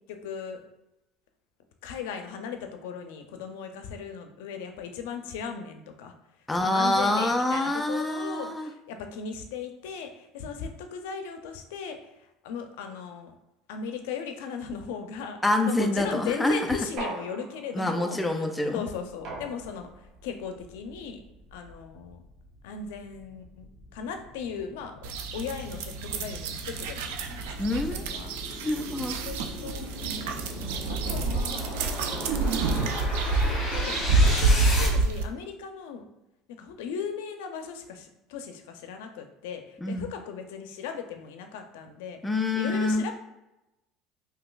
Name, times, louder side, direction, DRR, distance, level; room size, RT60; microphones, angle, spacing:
voice 1, 0.1-0.6 1.8-6.1 6.6-13.3 13.7-15.4 15.6-18.2 18.7-19.9 20.2-21.2 21.5-22.2 22.6-25.0 25.3-28.3 29.2-30.5 30.8-31.9 32.7-36.0 36.5-42.2 42.5-43.1, left 6 dB, 90° left, 6 dB, 0.4 m, -37 dB
voice 2, 6.5-8.7 15.4-16.8 17.7-18.9 27.6-28.1 28.6-29.1 39.8-40.1 42.2-43.1, left 2 dB, 10° left, 5 dB, 0.4 m, -26 dB
sound 1, 17.0-18.0 19.2-20.1, right 2 dB, 50° right, 0.7 m, -38 dB
sound 2, 20.2-20.3 20.7-34.9, left 2 dB, 40° left, 1.1 m, -37 dB
sound 3, 25.0-35.2, right 3 dB, 90° right, 0.3 m, -27 dB
3.8 x 2.7 x 2.4 m, 0.93 s
cardioid pair, 135°, 0 cm